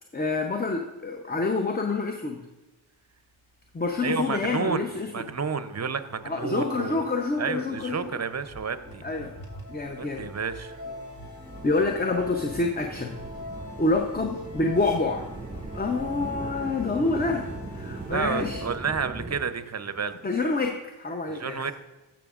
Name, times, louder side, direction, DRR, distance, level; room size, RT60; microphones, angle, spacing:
voice 1, 0.1-2.4 3.7-5.1 6.2-8.1 9.0-9.3 9.7-10.3 11.6-13.1 13.8-15.3 15.7-17.4 17.7-18.6 20.2-21.7, left 3 dB, 20° left, 4 dB, 0.7 m, -27 dB
voice 2, 4.0-7.0 7.4-9.0 10.0-10.8 18.1-20.2 21.3-21.7, right 5 dB, 35° right, 12 dB, 0.7 m, -30 dB
sound 1, 4.8-18.8, left 1 dB, 45° left, 2.6 m, -43 dB
sound 2, 11.4-19.4, right 2 dB, 15° right, 1.9 m, -39 dB
13.0 x 6.1 x 2.5 m, 1.1 s
supercardioid pair, 40°, 49 cm